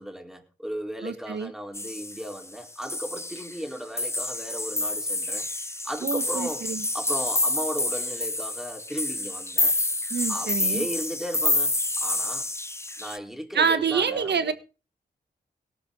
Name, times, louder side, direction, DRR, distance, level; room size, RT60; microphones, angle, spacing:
voice 1, 0.0-5.5 5.8-6.7 6.9-9.7 10.3-12.4 13.0-14.5, equal, ahead, 4.3 m, -36 dB
voice 2, 1.0-1.5 6.0-6.8 10.1-10.9 13.5-14.5, right 6 dB, 80° right, 1.5 m, -26 dB
sound 1, 1.7-2.5 2.8-3.7 4.0-13.2, left 2 dB, 15° left, 0.9 m, -28 dB
18.0 x 12.0 x 4.0 m
cardioid pair, 55°, 18 cm